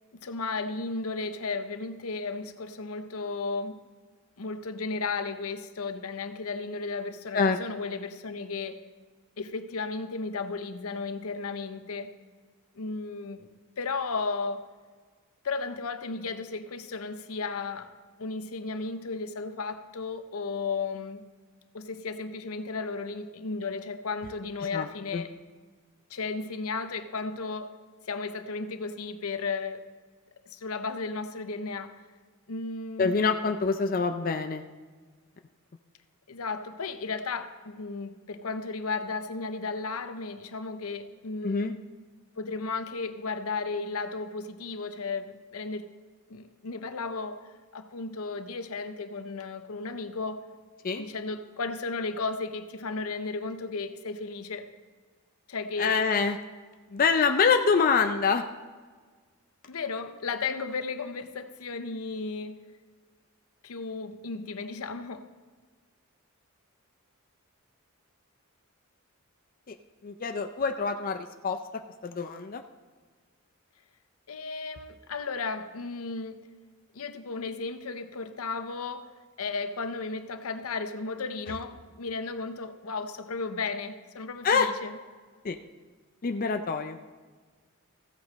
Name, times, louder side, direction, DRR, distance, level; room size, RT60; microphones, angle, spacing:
voice 1, 0.1-3.8 4.4-8.8 9.4-12.1 12.7-13.5 13.8-14.7 15.4-17.9 18.2-21.2 21.7-25.3 26.1-27.8 28.0-29.8 30.5-32.0 32.5-33.3 36.3-41.8 42.4-45.9 46.3-47.4 47.7-50.4 51.0-54.7 55.5-55.9 59.7-62.6 63.6-65.3 74.3-76.4 76.9-79.1 79.4-85.0, left 4 dB, 80° left, 9 dB, 0.7 m, -34 dB
voice 2, 24.7-25.2 33.0-34.6 41.4-41.7 50.8-51.1 55.8-56.4 56.9-58.4 69.7-69.8 70.0-71.6 72.0-72.6 84.4-84.7 85.4-85.6 86.2-87.0, left 5 dB, 40° left, 6 dB, 0.4 m, -25 dB
15.0 x 8.0 x 4.1 m, 1.5 s
head